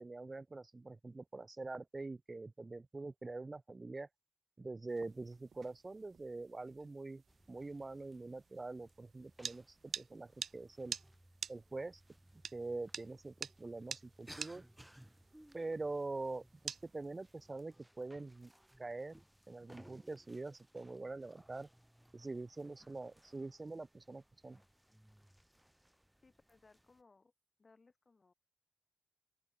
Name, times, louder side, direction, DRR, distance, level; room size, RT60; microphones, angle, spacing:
voice 1, 0.0-4.1 4.6-7.2 7.5-11.0 11.5-12.0 12.5-14.6 15.5-18.5 18.8-19.2 19.5-21.7 22.1-24.6, right 3 dB, 30° right, 0.4 m, -44 dB
sound 1, 4.9-17.5, right 7 dB, 70° right, 0.6 m, -50 dB
sound 2, 7.3-27.0, right 1 dB, 5° right, 1.2 m, -63 dB
voice 2, 26.2-27.3 27.6-28.3, left 3 dB, 35° left, 3.6 m, -66 dB
open air
cardioid pair, 80°, 0 cm